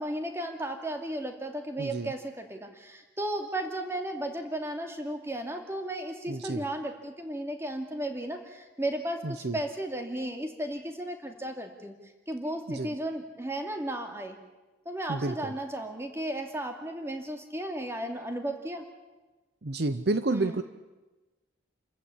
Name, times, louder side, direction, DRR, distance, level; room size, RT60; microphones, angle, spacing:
voice 1, 0.0-12.0 12.3-14.4 14.9-18.8 20.3-20.6, right 1 dB, 15° right, 4 dB, 2.5 m, -34 dB
voice 2, 1.8-2.1 6.3-6.6 9.2-9.6 12.7-12.9 15.1-15.5 19.6-20.6, right 2 dB, 55° right, 11 dB, 0.8 m, -30 dB
28.5 x 14.5 x 9.7 m, 1.2 s
head